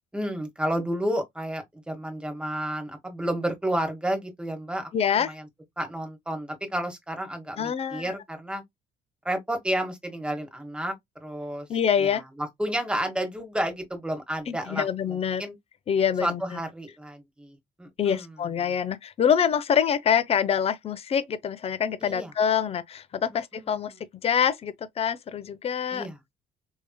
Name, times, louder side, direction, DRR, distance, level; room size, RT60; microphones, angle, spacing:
voice 1, 0.1-5.5 5.8-8.6 9.2-10.9 11.2-11.7 12.0-15.5 16.2-18.3 22.0-22.3 23.5-23.9 25.9-26.2, right 1 dB, 5° right, 1.2 m, -31 dB
voice 2, 4.9-5.3 7.6-8.1 11.7-12.2 14.5-15.4 15.9-16.6 18.0-23.9 24.2-26.1, left 8 dB, 35° left, 0.5 m, -25 dB
3.3 x 2.8 x 2.2 m
cardioid pair, 110°, 17 cm